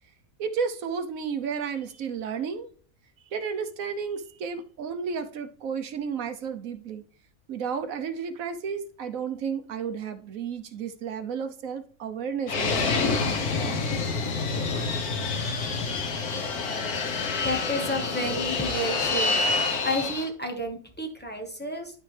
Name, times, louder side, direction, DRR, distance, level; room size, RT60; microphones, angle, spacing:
voice 1, 0.4-2.7 3.3-7.0 7.5-13.0, right 6 dB, 70° right, 7 dB, 1.2 m, -32 dB
Fixed-wing aircraft airplane, 12.5-20.3, left 4 dB, 90° left, 1.6 m, -27 dB
voice 2, 17.4-19.4 19.8-21.9, equal, 5° left, 3 dB, 1.2 m, -30 dB
12.0 x 4.5 x 3.3 m, 0.43 s
omnidirectional pair, 1.5 m